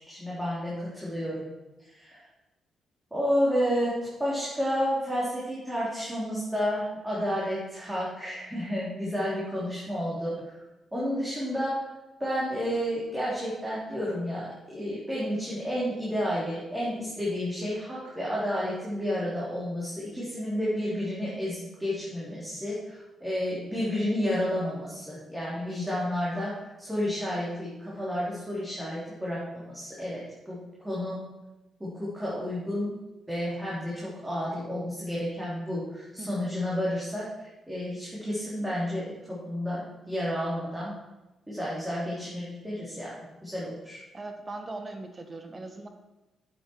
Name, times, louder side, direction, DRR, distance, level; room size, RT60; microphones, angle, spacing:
voice 1, 0.1-1.4 1.8-2.2 3.1-10.4 10.9-11.8 12.2-30.2 30.5-31.2 31.8-33.0 33.3-40.9 41.5-43.1 43.4-44.0, equal, 10° right, -8 dB, 3.7 m, -31 dB
voice 2, 44.1-45.9, right 2 dB, 35° right, 6 dB, 1.5 m, -39 dB
9.2 x 8.5 x 4.7 m, 1.0 s
supercardioid pair, 65°, 0 cm